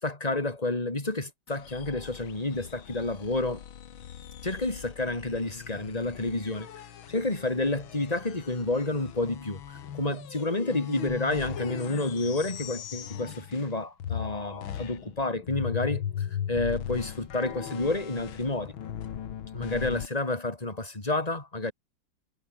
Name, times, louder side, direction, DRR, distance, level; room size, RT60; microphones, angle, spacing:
voice 1, 0.0-3.6 4.4-6.7 7.1-18.7 19.5-21.7, left 2 dB, 20° left, 3.4 m, -30 dB
sound 1, 1.5-13.8 14.0-20.1, left 9 dB, 85° left, 2.2 m, -39 dB
omnidirectional pair, 2.1 m